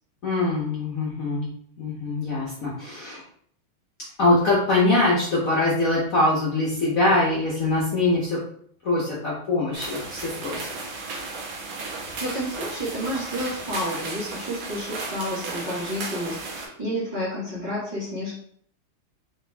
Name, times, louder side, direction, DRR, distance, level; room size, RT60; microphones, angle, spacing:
voice 1, 0.2-1.5 1.8-3.2 4.2-8.4 8.8-10.8, left 2 dB, 50° left, -6 dB, 1.1 m, -23 dB
sound 1, 9.7-16.7, right 3 dB, 75° right, 1.7 m, -34 dB
voice 2, 12.2-18.3, equal, 25° right, -9 dB, 1.5 m, -30 dB
4.0 x 2.9 x 3.3 m, 0.63 s
omnidirectional pair, 2.3 m